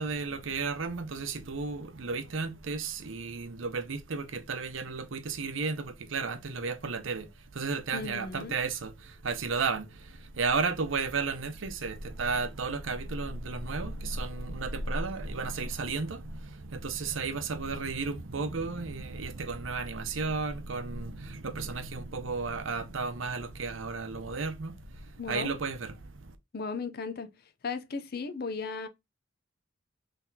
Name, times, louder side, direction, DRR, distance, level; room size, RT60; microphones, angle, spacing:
voice 1, 0.0-26.4, right 4 dB, 80° right, 0.7 m, -33 dB
voice 2, 7.9-8.6 25.2-25.5 26.5-27.3 27.6-28.9, left 4 dB, 50° left, 0.6 m, -36 dB
3.9 x 3.4 x 2.8 m
head